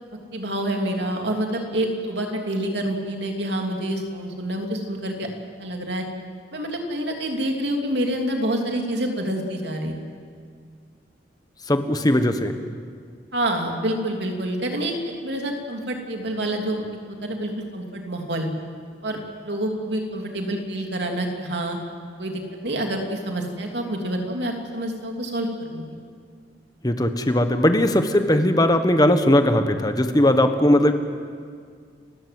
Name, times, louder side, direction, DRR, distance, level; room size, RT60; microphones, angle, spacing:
voice 1, 0.3-5.3 5.6-6.0 6.5-9.9 13.3-18.5 19.0-21.8 22.2-25.8, right 1 dB, 65° right, 2 dB, 3.1 m, -27 dB
voice 2, 11.7-12.6 26.8-30.9, left 1 dB, 20° left, 8 dB, 1.3 m, -19 dB
29.5 x 15.5 x 7.9 m, 2.1 s
head